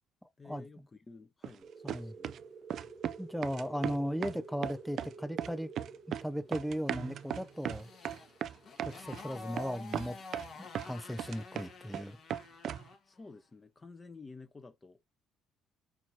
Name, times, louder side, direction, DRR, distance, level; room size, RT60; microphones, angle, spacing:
voice 1, 0.4-2.3 13.1-15.0, left 3 dB, 20° left, 0.9 m, -52 dB
sound 1, 1.4-1.6 1.9-2.4 2.7-3.2 3.4-4.4 4.6-5.1 5.4-6.3 6.5-9.2 9.6-9.7 9.9-10.9 11.2-12.0 12.3-12.9, right 9 dB, 55° right, 0.4 m, -37 dB
sound 2, 1.6-9.9, right 4 dB, 20° right, 0.8 m, -51 dB
voice 2, 3.2-5.7 6.1-7.9 8.8-10.2 10.6-12.2, equal, ahead, 0.5 m, -37 dB
Motorcycle, 7.0-13.1, left 5 dB, 45° left, 1.4 m, -50 dB
6.0 x 2.9 x 2.8 m
cardioid pair, 125°, 0 cm